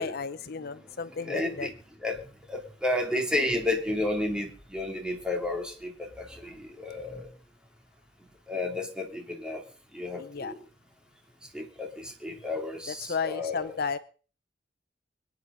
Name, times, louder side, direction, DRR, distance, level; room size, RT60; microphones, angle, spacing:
voice 1, 0.0-1.7 10.2-10.5 12.9-14.0, left 5 dB, 60° left, 14 dB, 0.7 m, -33 dB
voice 2, 1.2-1.7 2.0-2.2 2.5-7.3 8.5-9.6 9.9-10.6 11.5-13.6, left 2 dB, 5° right, 2 dB, 3.0 m, -31 dB
25.0 x 9.6 x 4.0 m, 0.39 s
head